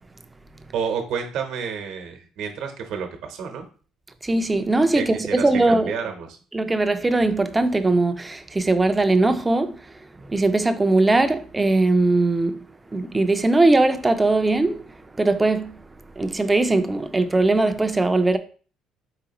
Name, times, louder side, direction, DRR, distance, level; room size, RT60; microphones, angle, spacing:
voice 1, 0.7-3.6 4.9-6.3, right 6 dB, 70° right, 0.8 m, -30 dB
voice 2, 4.2-5.9 6.5-9.8 10.2-12.6 12.9-14.8 15.2-15.7 16.2-18.4, right 2 dB, 15° right, 0.4 m, -20 dB
4.8 x 3.3 x 2.9 m
cardioid pair, 135°, 0 cm